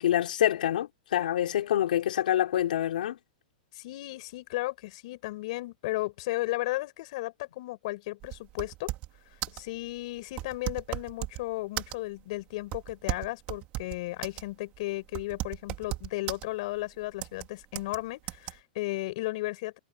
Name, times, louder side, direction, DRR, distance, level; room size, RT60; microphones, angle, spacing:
voice 1, 0.0-3.2, left 11 dB, 75° left, 5.1 m, -26 dB
voice 2, 3.7-8.9 9.5-19.8, left 19 dB, 45° left, 7.5 m, -35 dB
sound 1, 8.2-9.2 9.4-9.7 10.3-11.4 11.8-12.2 12.7-14.5 14.7-14.8 15.1-16.4 17.2-17.5 17.8-18.0 18.3-18.5, right 17 dB, 30° right, 2.3 m, -35 dB
supercardioid pair, 165°, 5 cm